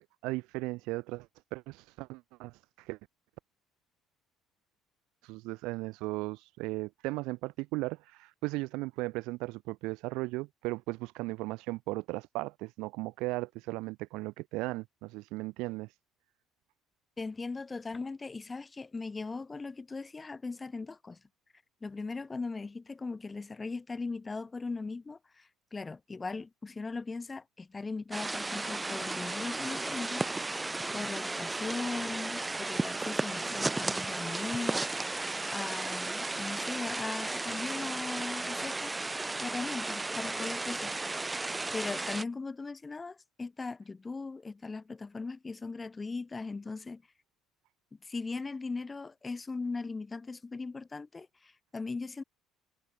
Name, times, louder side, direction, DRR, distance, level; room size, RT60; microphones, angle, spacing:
voice 1, 0.0-3.0 5.2-15.9, right 22 dB, 80° right, 5.0 m, -37 dB
voice 2, 17.2-21.2 21.8-30.6 30.9-35.1 35.5-39.0 39.4-41.0 41.7-47.0 48.0-52.2, left 3 dB, 20° left, 6.5 m, -39 dB
sound 1, 28.1-42.2, right 2 dB, 10° right, 1.9 m, -34 dB
cardioid pair, 130°, 0 cm